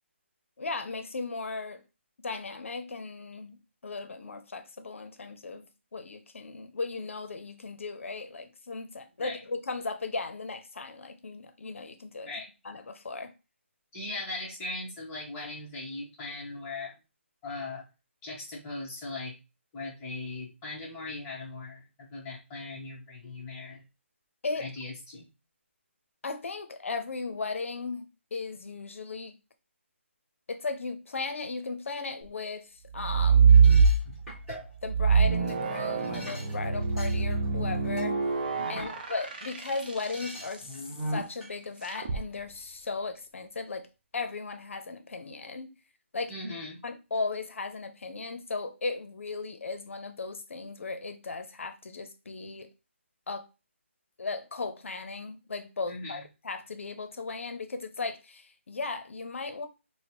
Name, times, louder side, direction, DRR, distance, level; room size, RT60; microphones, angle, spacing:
voice 1, 0.6-1.8 2.2-3.6 3.8-12.3 12.6-13.3 24.4-24.7 26.2-29.3 30.5-33.6 34.8-38.2 38.7-40.8 41.1-43.9 44.1-45.7 46.1-46.3 46.8-52.7 53.3-53.5 54.2-59.7, left 4 dB, 75° left, 0.6 m, -36 dB
voice 2, 13.9-16.9 17.4-17.8 18.2-19.3 19.7-23.8 24.5-25.3 34.0-34.1 38.7-38.9 46.3-46.8 55.9-56.2, left 2 dB, 15° left, 1.0 m, -39 dB
sound 1, 32.9-34.4 34.8-40.3 41.9-42.2, right 5 dB, 40° right, 0.6 m, -23 dB
sound 2, 33.5-39.5 39.8-41.5, equal, 5° right, 1.3 m, -41 dB
4.1 x 2.1 x 2.9 m
hypercardioid pair, 165°, 7 cm